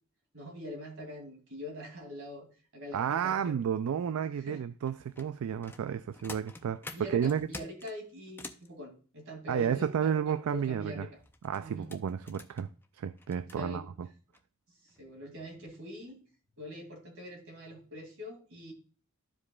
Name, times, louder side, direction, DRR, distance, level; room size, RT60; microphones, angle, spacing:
voice 1, 0.3-2.5 2.7-3.6 4.4-4.6 6.9-11.1 11.6-11.9 13.6-13.8 14.8-16.2 16.6-18.7, left 1 dB, 70° right, 2.6 m, -44 dB
voice 2, 2.9-7.5 9.5-11.1 11.4-12.7 12.9-14.1, right 8 dB, 85° right, 0.3 m, -32 dB
sound 1, 4.8-8.7 11.2-13.6 14.3-14.4 14.9-15.1 15.5-15.7 16.1-16.2, left 2 dB, 10° left, 0.5 m, -48 dB
13.0 x 4.9 x 2.3 m
head